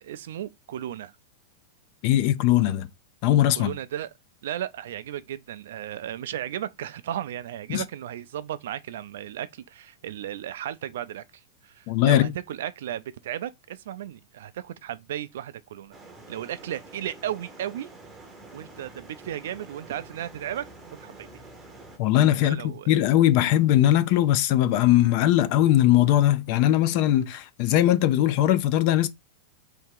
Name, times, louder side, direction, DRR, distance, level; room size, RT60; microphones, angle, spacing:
voice 1, 0.0-1.1 3.6-4.1 4.4-16.0 16.3-17.9 18.5-20.7 21.0-21.4 22.3-22.9, right 11 dB, 65° right, 0.4 m, -35 dB
voice 2, 2.0-2.9 3.2-3.7 7.7-7.8 11.9-12.3 22.0-29.1, left 13 dB, 35° left, 0.4 m, -20 dB
sound 1, 15.9-22.0, right 2 dB, 10° right, 0.8 m, -47 dB
3.5 x 2.8 x 4.6 m
supercardioid pair, 170°, 0 cm